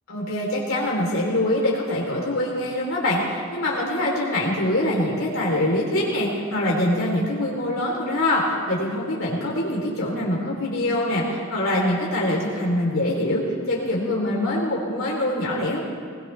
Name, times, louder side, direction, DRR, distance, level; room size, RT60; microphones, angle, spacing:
voice 1, 0.1-15.8, left 1 dB, 65° left, -4 dB, 3.5 m, -24 dB
21.0 x 20.5 x 3.4 m, 2.1 s
head